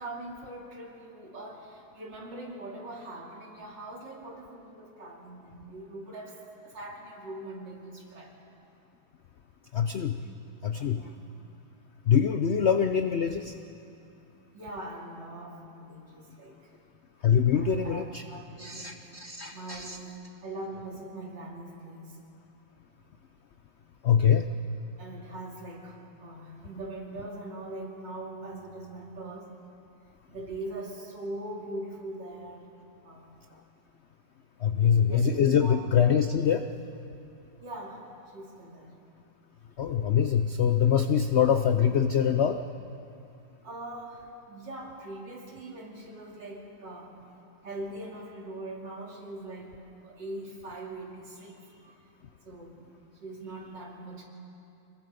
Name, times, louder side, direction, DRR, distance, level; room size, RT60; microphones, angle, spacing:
voice 1, 0.0-8.4 10.8-11.2 14.5-16.8 17.5-19.0 19.5-20.1 20.4-22.2 25.0-29.6 30.3-32.7 33.0-33.3 34.6-35.8 37.6-38.9 43.6-47.2 47.6-49.7 50.0-52.0 52.4-52.7 53.2-54.2, right 2 dB, 80° right, -2 dB, 3.6 m, -42 dB
voice 2, 9.7-10.2 10.6-11.1 12.1-13.5 17.2-18.2 18.6-20.0 24.0-24.5 34.6-36.7 39.8-42.6, left 8 dB, 85° left, 8 dB, 0.5 m, -24 dB
25.5 x 21.5 x 5.2 m, 2.7 s
omnidirectional pair, 1.9 m